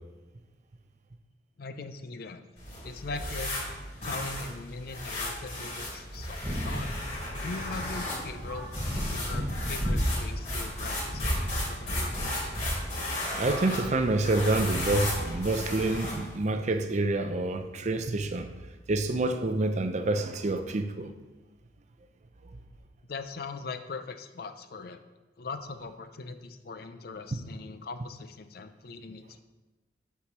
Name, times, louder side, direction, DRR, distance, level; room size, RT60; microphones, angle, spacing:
voice 1, 1.6-2.4 2.8-3.5 4.0-6.9 7.3-8.7 9.1-12.3 23.1-25.0 25.4-29.4, left 3 dB, 55° left, 0.5 m, -40 dB
sound 1, 2.6-16.3, left 1 dB, 40° left, 2.9 m, -35 dB
sound 2, 6.3-16.0, equal, 10° right, 1.4 m, -36 dB
voice 2, 13.3-18.5 18.9-21.1 27.3-27.4, right 2 dB, 40° right, 0.5 m, -27 dB
6.9 x 4.8 x 6.0 m
head